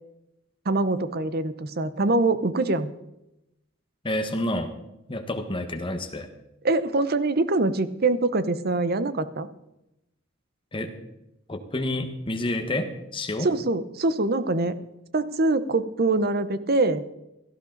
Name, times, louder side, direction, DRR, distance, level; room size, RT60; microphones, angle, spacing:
voice 1, 0.7-2.9 6.6-9.5 13.4-14.7 15.1-17.0, right 2 dB, 50° right, 14 dB, 0.8 m, -24 dB
voice 2, 4.0-4.7 5.1-6.3 10.7-10.9 11.5-13.5, left 1 dB, 25° left, 7 dB, 1.4 m, -29 dB
17.0 x 13.5 x 4.0 m, 0.90 s
head